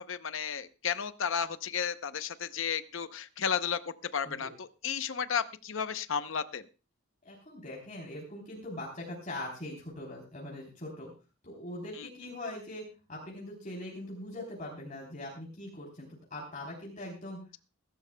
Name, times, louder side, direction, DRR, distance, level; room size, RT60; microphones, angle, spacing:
voice 1, 0.0-6.6 12.0-12.1, left 7 dB, 65° left, 12 dB, 0.7 m, -33 dB
voice 2, 7.2-11.1 11.4-17.4, left 1 dB, 35° left, -2 dB, 3.5 m, -42 dB
22.0 x 12.5 x 2.2 m, 0.31 s
head